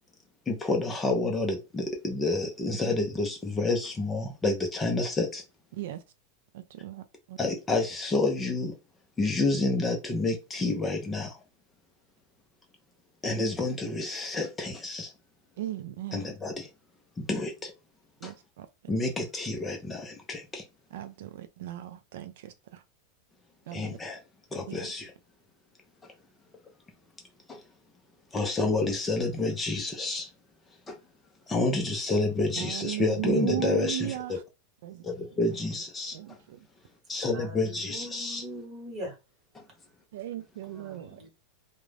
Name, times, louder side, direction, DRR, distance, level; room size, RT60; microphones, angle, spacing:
voice 1, 0.5-5.4 7.4-8.7 9.2-11.4 13.2-15.1 16.1-16.7 17.2-17.7 18.2-18.3 18.9-20.6 23.7-24.2 24.5-25.1 27.5-27.6 28.3-30.3 30.9-31.0 31.5-34.4 35.0-36.4 37.1-38.4 39.5-39.6, left 2 dB, 10° left, 0.5 m, -29 dB
voice 2, 5.7-6.0 6.5-7.4 15.6-16.4 18.2-18.7 20.9-22.8 23.7-24.0 24.7-24.9 32.6-34.4 34.8-35.1 36.1-36.6 40.1-41.2, right 12 dB, 70° right, 0.3 m, -36 dB
voice 3, 37.3-39.2 40.7-41.3, equal, 20° right, 1.1 m, -41 dB
2.4 x 2.1 x 3.2 m
supercardioid pair, 165°, 0 cm